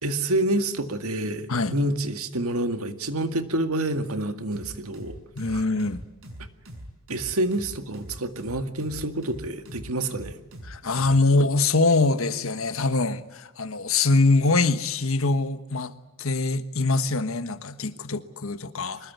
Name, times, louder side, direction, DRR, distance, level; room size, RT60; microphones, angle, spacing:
voice 1, 0.0-5.2 5.5-5.6 7.1-10.4, right 1 dB, 85° right, 2.0 m, -28 dB
sound 1, 4.5-11.2, equal, 70° right, 6.3 m, -42 dB
voice 2, 5.3-6.0 10.6-15.9 16.2-19.1, left 3 dB, 75° left, 1.4 m, -23 dB
24.5 x 21.0 x 9.4 m
head